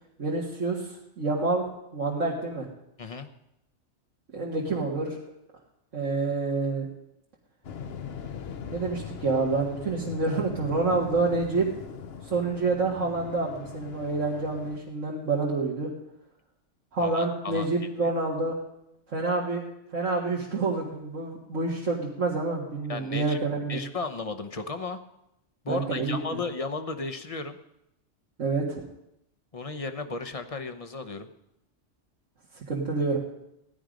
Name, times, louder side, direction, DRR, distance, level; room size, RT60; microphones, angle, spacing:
voice 1, 0.2-2.7 4.3-5.2 5.9-6.9 8.7-11.7 12.3-15.9 16.9-18.6 19.1-19.6 19.9-23.8 25.7-26.4 28.4-28.8 32.6-33.2, right 3 dB, 90° right, -3 dB, 2.1 m, -28 dB
Waves surf, 7.6-14.8, left 7 dB, 60° left, 1.0 m, -40 dB
voice 2, 17.0-17.7 18.0-18.1 22.9-23.4 23.7-25.0 25.6-27.6 29.5-31.3, left 3 dB, 30° left, 8 dB, 0.9 m, -34 dB
16.5 x 11.0 x 5.2 m, 0.84 s
omnidirectional pair, 1.2 m